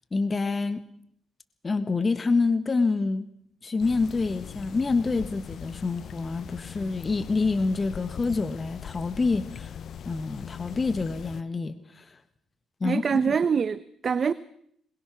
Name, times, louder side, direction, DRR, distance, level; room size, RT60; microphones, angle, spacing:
voice 1, 0.1-0.8 1.6-3.3 3.6-9.7 10.0-12.2 12.8-13.3, left 3 dB, 30° left, 1.6 m, -27 dB
sound 1, 3.8-11.4, left 8 dB, 60° left, 0.7 m, -40 dB
voice 2, 12.8-14.3, right 6 dB, 45° right, 0.8 m, -25 dB
22.5 x 20.5 x 6.2 m
cardioid pair, 90°, 0 cm